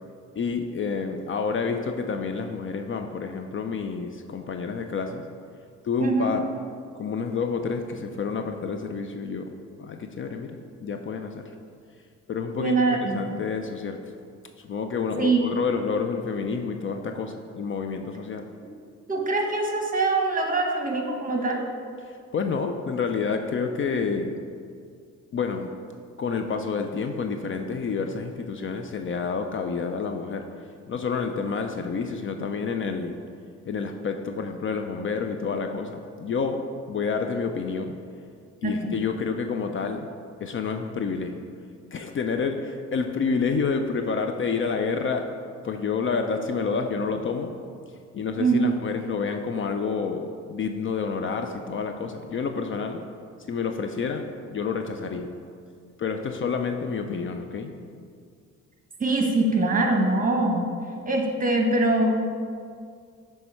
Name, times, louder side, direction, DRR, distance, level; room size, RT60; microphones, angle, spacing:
voice 1, 0.4-5.3 5.8-6.4 7.0-9.5 9.8-11.5 12.3-14.0 14.6-18.5 22.3-24.3 25.3-25.7 26.2-30.4 30.9-33.2 33.7-38.0 38.6-40.1 40.4-41.4 41.9-45.3 45.6-47.5 48.1-53.0 53.5-55.3 56.0-57.7, left 5 dB, 40° left, 5 dB, 0.5 m, -29 dB
voice 2, 6.0-6.3 12.6-13.3 15.2-15.4 19.1-21.7 38.6-39.0 48.4-48.8 59.0-60.7 61.1-62.1, right 2 dB, 25° right, 2 dB, 1.1 m, -23 dB
7.5 x 3.3 x 5.5 m, 2.2 s
cardioid pair, 90°, 30 cm